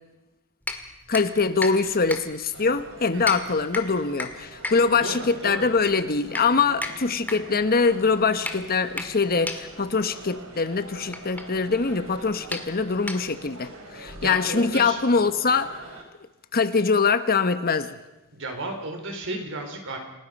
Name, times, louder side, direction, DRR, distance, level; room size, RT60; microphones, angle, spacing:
sound 1, 0.6-13.6, left 2 dB, 10° left, 2.0 m, -37 dB
voice 1, 1.1-15.8 16.5-18.0, left 4 dB, 45° left, 11 dB, 1.1 m, -23 dB
sound 2, 2.5-16.0, right 1 dB, 80° right, 5.1 m, -44 dB
voice 2, 5.0-5.7 13.6-13.8 14.2-15.0 18.3-20.0, right 2 dB, 60° right, 4 dB, 4.7 m, -33 dB
28.5 x 19.0 x 5.4 m, 1.0 s
head